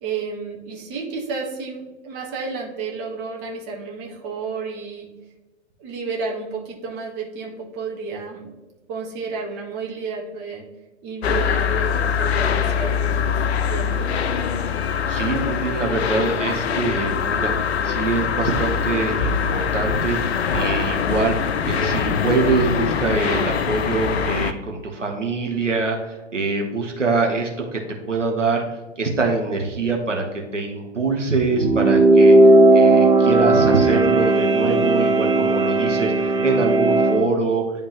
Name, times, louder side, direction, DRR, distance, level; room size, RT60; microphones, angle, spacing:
voice 1, 0.0-5.1 5.8-8.5 8.9-10.6 11.0-14.2, right 4 dB, 30° right, -2 dB, 1.6 m, -32 dB
sound 1, 11.2-24.5, left 6 dB, 60° left, 0.6 m, -23 dB
voice 2, 15.1-27.8 28.1-28.6 29.0-37.7, right 3 dB, 90° right, 1 dB, 1.2 m, -24 dB
sound 2, 31.5-37.2, right 2 dB, 10° right, 0.9 m, -16 dB
10.5 x 3.5 x 2.9 m, 1.2 s
figure-of-eight pair, 105°, 36 cm